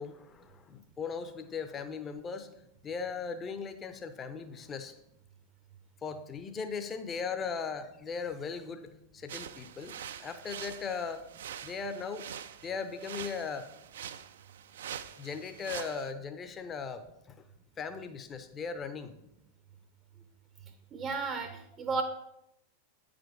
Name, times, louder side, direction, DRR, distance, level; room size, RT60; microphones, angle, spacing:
voice 1, 0.0-2.5 2.8-4.9 6.0-11.2 11.6-12.3 12.6-13.7 15.2-17.4 17.8-19.1, left 5 dB, 25° left, 9 dB, 0.7 m, -38 dB
sound 1, 9.3-16.1, right 9 dB, 60° right, 0.4 m, -44 dB
voice 2, 20.9-22.0, right 4 dB, 25° right, 7 dB, 0.6 m, -33 dB
9.0 x 5.1 x 4.6 m, 0.82 s
figure-of-eight pair, 90°, 0 cm